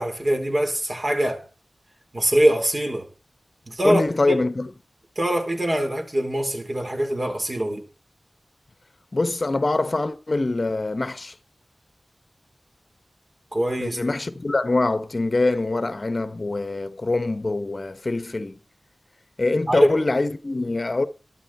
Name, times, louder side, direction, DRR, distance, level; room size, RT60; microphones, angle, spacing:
voice 1, 0.0-1.4 2.1-3.1 3.7-4.0 4.3-4.4 5.2-7.8 13.5-14.0 19.7-19.9, right 1 dB, 40° right, 4.0 m, -23 dB
voice 2, 3.8-4.7 9.1-11.4 13.8-18.6 19.4-21.1, left 2 dB, 45° left, 1.0 m, -24 dB
13.0 x 12.5 x 4.3 m
wide cardioid pair, 55°, 0 cm